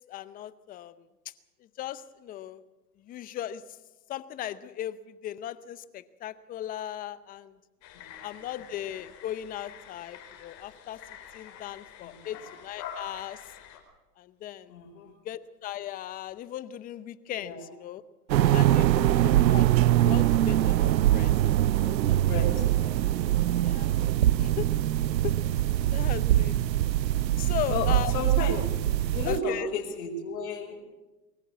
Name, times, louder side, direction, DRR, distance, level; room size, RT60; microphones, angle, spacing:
voice 1, 0.1-1.1 1.8-2.6 3.0-3.6 4.1-7.6 8.2-11.0 11.3-13.4 14.2-14.8 15.0-18.0 18.4-19.2 19.5-21.3 21.7-22.7 23.6-24.0 24.4-24.7 25.2-25.4 25.9-26.6 27.4-28.1 29.3-29.7, left 12 dB, 20° left, 15 dB, 0.7 m, -37 dB
sound 1, 7.8-13.8, left 8 dB, 35° left, 4.6 m, -46 dB
voice 2, 7.9-8.5 12.0-12.3 14.7-15.1 17.4-17.7 18.9-19.0 19.4-19.6 22.2-23.1 23.4-23.7 27.7-28.7 29.1-30.8, left 3 dB, 60° left, 1 dB, 5.1 m, -34 dB
sound 2, 18.3-29.4, right 13 dB, 90° right, 0.6 m, -23 dB
23.0 x 15.0 x 8.2 m, 1.1 s
hypercardioid pair, 130°, 50 cm